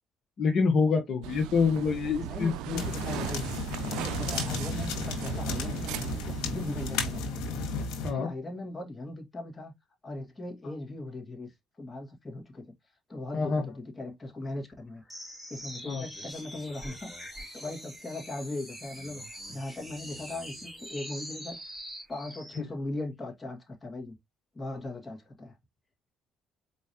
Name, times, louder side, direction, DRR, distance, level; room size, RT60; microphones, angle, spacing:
voice 1, 0.4-2.8 8.0-8.3 13.3-13.7 15.9-16.0 22.6-22.7, left 5 dB, 50° left, 1.2 m, -26 dB
sound 1, 1.2-7.2, right 13 dB, 85° right, 0.3 m, -38 dB
voice 2, 2.2-3.4 3.9-7.3 8.1-9.7 10.0-11.5 11.8-12.7 13.1-15.0 15.5-19.2 19.5-21.6 22.1-24.2 24.5-25.5, left 2 dB, 20° left, 1.8 m, -39 dB
sound 2, 2.8-8.1, left 3 dB, 80° left, 1.6 m, -33 dB
sound 3, 15.1-22.7, equal, ahead, 2.7 m, -44 dB
4.7 x 3.0 x 2.9 m
supercardioid pair, 85°, 0 cm